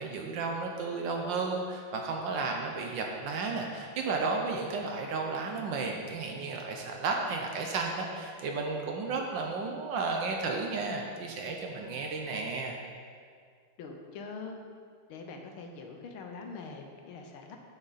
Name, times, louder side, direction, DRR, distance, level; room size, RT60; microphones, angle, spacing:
voice 1, 0.0-12.8, right 4 dB, 70° right, 1 dB, 1.3 m, -33 dB
voice 2, 13.8-14.6 15.1-17.6, left 4 dB, 75° left, 3 dB, 1.6 m, -43 dB
8.7 x 6.4 x 4.1 m, 2.1 s
omnidirectional pair, 2.4 m